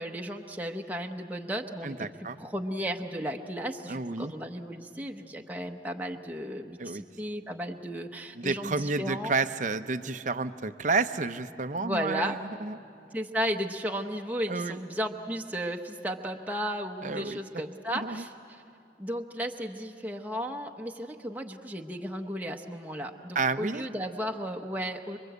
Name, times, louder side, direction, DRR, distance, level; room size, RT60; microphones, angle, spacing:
voice 1, 0.0-2.1 2.4-9.3 11.8-12.4 13.1-18.6 19.0-25.2, equal, 10° right, 2 dB, 0.9 m, -34 dB
voice 2, 1.8-2.4 3.9-4.3 6.8-7.0 8.3-12.8 14.5-14.8 17.0-17.4 17.9-18.2 23.3-23.8, right 4 dB, 45° right, 11 dB, 0.7 m, -30 dB
26.5 x 24.0 x 8.1 m, 2.5 s
head